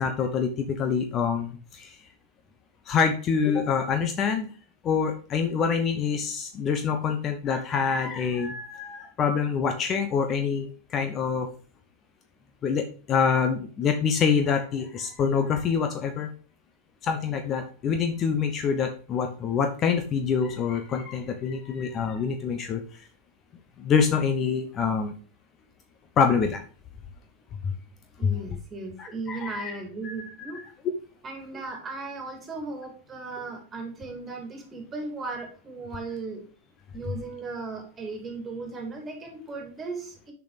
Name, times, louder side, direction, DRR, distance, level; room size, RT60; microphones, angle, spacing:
voice 1, 0.0-2.0 2.9-4.5 4.8-11.5 12.6-16.3 17.0-22.8 23.8-25.1 26.2-26.6 27.6-27.7 28.2-28.3 29.0-29.8 30.0-30.1 30.5-30.6, left 6 dB, 30° left, 6 dB, 1.0 m, -26 dB
voice 2, 28.2-30.6 31.2-36.5 36.9-40.3, right 3 dB, 20° right, 2 dB, 2.8 m, -36 dB
6.9 x 6.2 x 5.0 m, 0.38 s
figure-of-eight pair, 90°, 0 cm